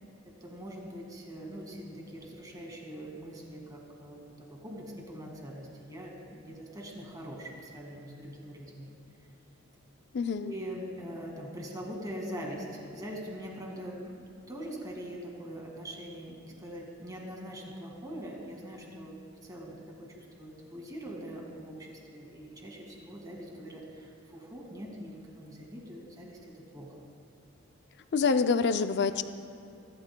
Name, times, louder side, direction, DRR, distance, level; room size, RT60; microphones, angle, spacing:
voice 1, 0.2-8.9 10.3-19.2 19.4-27.0, equal, 15° right, -1 dB, 2.0 m, -43 dB
voice 2, 10.1-10.5 28.1-29.2, left 5 dB, 50° left, 9 dB, 0.5 m, -26 dB
27.0 x 12.0 x 2.3 m, 2.7 s
head